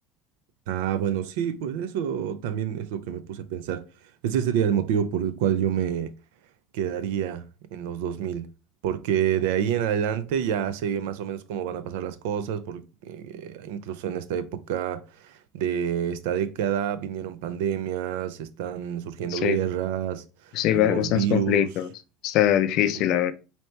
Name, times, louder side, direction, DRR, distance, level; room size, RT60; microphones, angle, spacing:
voice 1, 0.7-3.9 4.2-6.1 6.7-8.5 8.8-20.2 20.7-21.7 23.0-23.1, right 9 dB, 80° right, 0.5 m, -28 dB
voice 2, 20.5-21.9 22.2-23.3, left 12 dB, 55° left, 0.4 m, -22 dB
4.4 x 2.8 x 3.2 m
cardioid pair, 140°, 0 cm